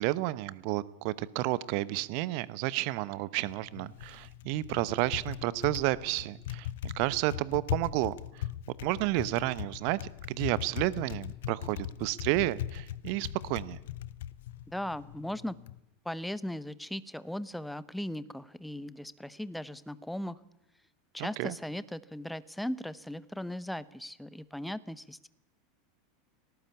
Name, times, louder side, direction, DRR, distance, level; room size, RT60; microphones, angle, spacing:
voice 1, 0.0-8.4 8.8-10.0 10.3-13.8 21.2-21.5, right 17 dB, 50° right, 19 dB, 0.9 m, -31 dB
Typing, 3.4-15.8, left 12 dB, 60° left, 0.8 m, -40 dB
voice 2, 14.7-15.5 16.0-20.4 21.1-25.3, left 1 dB, 5° left, 18 dB, 0.9 m, -38 dB
18.5 x 18.0 x 8.4 m, 0.86 s
figure-of-eight pair, 80°, 0 cm